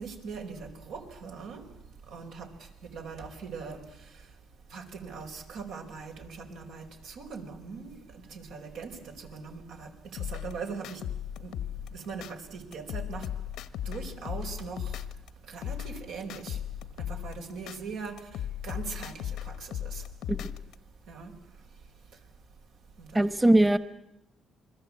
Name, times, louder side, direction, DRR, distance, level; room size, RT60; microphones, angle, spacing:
voice 1, 0.0-1.6 2.1-2.5 2.9-3.8 4.7-11.0 11.4-11.5 11.9-13.3 13.8-15.0 15.5-16.6 17.0-18.1 18.6-20.0 21.1-21.3 23.0-23.2 23.5-23.6, right 5 dB, 85° right, 3 dB, 4.6 m, -40 dB
sound 1, 10.2-12.3 12.7-15.3 15.6-17.8 18.2-20.7, left 10 dB, 90° left, 1.1 m, -37 dB
voice 2, 23.1-23.8, right 1 dB, 10° right, 14 dB, 1.1 m, -21 dB
29.0 x 21.0 x 8.6 m, 0.85 s
cardioid pair, 90°, 0 cm